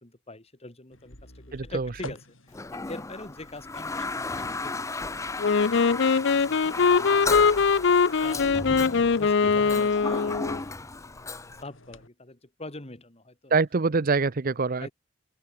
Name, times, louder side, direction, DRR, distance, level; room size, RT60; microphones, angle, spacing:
voice 1, 0.0-2.2 2.7-6.5 6.9-7.6 8.2-11.3 11.6-13.5 14.8-14.9, left 2 dB, 30° left, 2.8 m, -44 dB
sound 1, 0.9-12.1, left 2 dB, 85° left, 7.2 m, -52 dB
voice 2, 1.5-1.9 13.5-14.9, right 4 dB, 45° right, 0.7 m, -24 dB
Toilet flush, 2.5-11.6, left 3 dB, 15° left, 0.6 m, -34 dB
Wind instrument woodwind instrument, 5.4-10.6, left 5 dB, 65° left, 0.6 m, -22 dB
open air
head